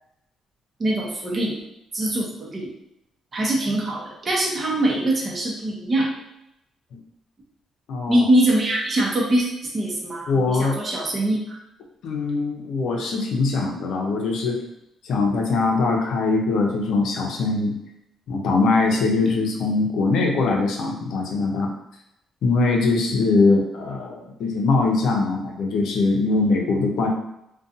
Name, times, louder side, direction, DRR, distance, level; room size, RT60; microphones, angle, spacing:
voice 1, 0.8-1.6 1.9-2.7 3.3-6.1 8.1-9.5 9.7-11.6, right 1 dB, 40° right, -3 dB, 0.7 m, -23 dB
voice 2, 7.9-8.3 10.3-10.8 12.0-14.6 15.0-17.7 18.3-21.7 22.4-27.1, left 3 dB, 75° left, 1 dB, 0.5 m, -22 dB
2.5 x 2.3 x 2.5 m, 0.83 s
cardioid pair, 90°, 0 cm